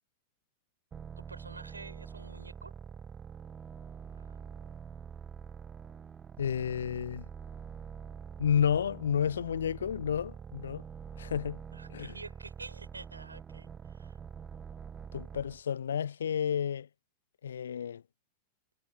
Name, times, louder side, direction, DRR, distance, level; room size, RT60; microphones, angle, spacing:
sound 1, 0.9-15.6, right 7 dB, 20° right, 0.6 m, -46 dB
voice 1, 1.2-2.7 4.2-4.4 11.7-14.2, right 3 dB, 80° right, 5.4 m, -48 dB
voice 2, 6.4-7.2 8.4-10.8 11.2-11.6 11.9-12.1 15.1-16.9 17.4-18.0, left 8 dB, 65° left, 0.7 m, -31 dB
figure-of-eight pair, 90°, 0 cm